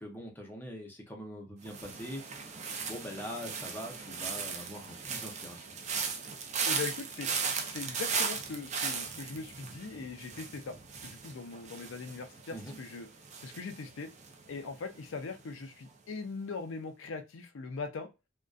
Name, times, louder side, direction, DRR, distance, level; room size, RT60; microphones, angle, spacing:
voice 1, 0.0-5.7 12.5-12.8, equal, 10° left, 0.6 m, -43 dB
sound 1, 1.7-14.7 15.0-15.4, right 5 dB, 35° right, 0.4 m, -37 dB
voice 2, 6.6-7.3 7.7-10.8 11.0-13.1 13.4-14.1 14.5-18.1, left 4 dB, 85° left, 0.4 m, -40 dB
2.5 x 2.2 x 2.3 m
head